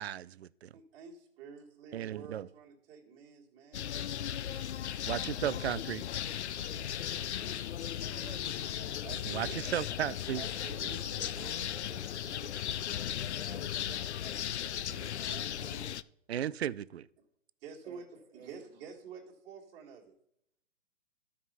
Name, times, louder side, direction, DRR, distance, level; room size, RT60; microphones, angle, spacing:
voice 1, 0.0-0.7 1.9-2.5 5.1-6.0 9.3-10.4 16.3-17.1, right 10 dB, 55° right, 0.5 m, -35 dB
voice 2, 0.7-4.3 4.5-4.7 6.6-8.1 9.0-9.6 10.3-12.9 13.4-14.1 14.4-16.0 17.6-18.0 18.3-20.1, right 6 dB, 25° right, 2.0 m, -50 dB
sound 1, 3.7-16.0, left 10 dB, 60° left, 0.5 m, -36 dB
tonerre-eglise, 4.9-12.1, right 1 dB, 5° right, 0.9 m, -57 dB
voice 3, 8.0-9.0 17.8-18.7, right 4 dB, 85° right, 1.2 m, -53 dB
12.5 x 5.0 x 5.5 m
figure-of-eight pair, 130°, 38 cm